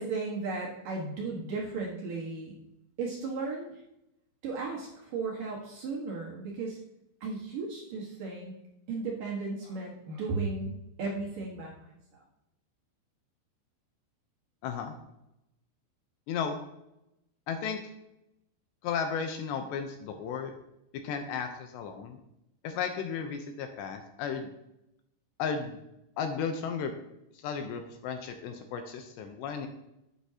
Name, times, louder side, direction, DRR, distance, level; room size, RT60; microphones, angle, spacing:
voice 1, 0.0-2.5 3.0-3.7 4.4-6.8 7.2-8.5 8.9-12.2, right 4 dB, 60° right, -3 dB, 2.6 m, -35 dB
voice 2, 14.6-14.9 16.3-16.6 17.5-17.9 18.8-20.5 21.0-22.2 22.6-24.5 25.4-25.8 26.2-26.9 27.3-29.7, left 6 dB, 75° left, 5 dB, 2.8 m, -34 dB
11.5 x 9.5 x 2.9 m, 0.85 s
omnidirectional pair, 5.4 m